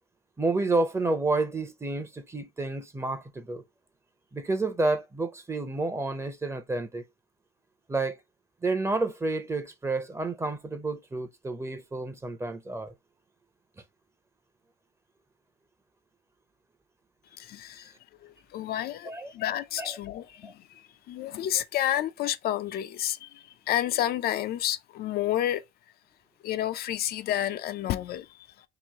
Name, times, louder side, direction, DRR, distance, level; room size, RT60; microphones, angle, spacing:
voice 1, 0.4-3.6 4.3-7.0 7.9-8.2 8.6-12.9 19.0-19.3 19.8-20.0 20.4-20.5, right 3 dB, 15° right, 0.7 m, -30 dB
voice 2, 17.4-17.9 18.2-20.5 21.1-25.6 26.4-28.3, left 12 dB, 65° left, 0.4 m, -30 dB
3.1 x 2.6 x 3.5 m
cardioid pair, 110°, 17 cm